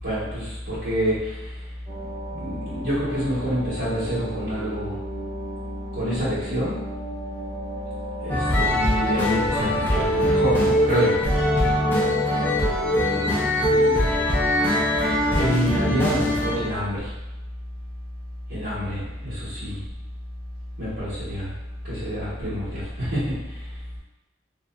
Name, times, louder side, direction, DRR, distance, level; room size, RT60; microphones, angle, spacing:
voice 1, 0.0-1.5 2.3-4.9 5.9-6.8 8.2-11.2 15.0-17.1 18.5-19.8 20.8-21.5 21.8-23.6, equal, 70° right, -15 dB, 1.4 m, -27 dB
sound 1, 1.9-14.9 15.2-15.3, equal, 45° right, 1.1 m, -38 dB
sound 2, 8.3-16.7, left 1 dB, 10° left, 0.4 m, -22 dB
voice 2, 12.9-14.4 19.0-19.2, equal, 80° left, -8 dB, 0.7 m, -37 dB
2.8 x 2.0 x 2.3 m, 1.0 s
head